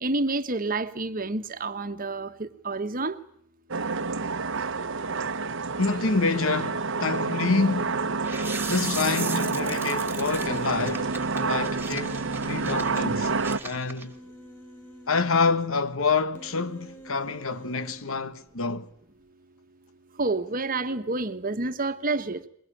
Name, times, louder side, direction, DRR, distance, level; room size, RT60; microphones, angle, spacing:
voice 1, 0.0-3.2 20.2-22.4, right 3 dB, 40° right, 1.3 m, -29 dB
sound 1, 3.7-13.6, right 4 dB, 60° right, 1.0 m, -29 dB
voice 2, 5.8-8.0 8.4-11.1 11.4-13.3 13.6-14.1 15.1-18.9, left 4 dB, 70° left, 1.2 m, -27 dB
sound 2, 8.2-14.1, right 4 dB, 10° right, 1.8 m, -38 dB
Human voice, 11.9-12.8 13.8-15.6 16.4-18.0, right 1 dB, 10° left, 4.2 m, -47 dB
23.0 x 22.0 x 9.9 m
head